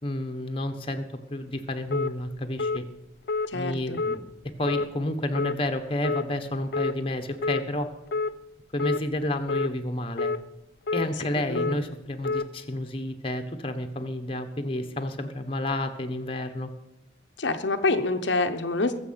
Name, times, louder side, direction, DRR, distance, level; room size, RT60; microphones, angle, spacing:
voice 1, 0.0-1.0 1.3-2.8 3.5-4.2 4.6-7.9 8.7-10.3 10.9-16.7, left 1 dB, 30° left, 6 dB, 1.2 m, -30 dB
sound 1, 1.9-2.1 2.6-2.8 3.3-3.5 3.9-4.2 4.7-4.9 5.3-5.6 6.0-6.2 6.7-6.9 7.4-7.6 8.1-8.3 8.8-9.0 9.5-9.7 10.2-10.4 10.9-11.1 11.5-11.8 12.2-12.5, left 4 dB, 55° left, 0.6 m, -27 dB
voice 2, 3.5-4.0 11.5-11.8 17.4-18.9, left 3 dB, 70° left, 6 dB, 0.9 m, -26 dB
21.0 x 7.7 x 5.8 m, 0.91 s
head